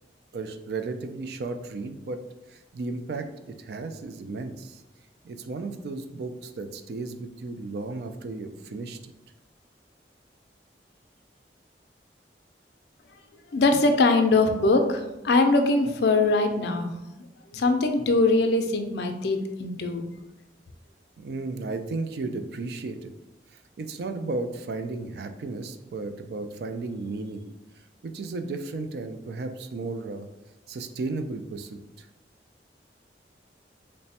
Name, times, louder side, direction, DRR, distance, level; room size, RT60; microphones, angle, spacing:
voice 1, 0.3-2.2 2.5-4.8 5.2-9.1 21.2-23.1 23.5-27.5 27.8-30.3 30.7-32.1, right 3 dB, 65° right, 7 dB, 0.3 m, -34 dB
voice 2, 13.5-16.9 17.5-20.1, left 3 dB, 75° left, 6 dB, 0.4 m, -22 dB
3.2 x 2.1 x 4.1 m, 0.95 s
head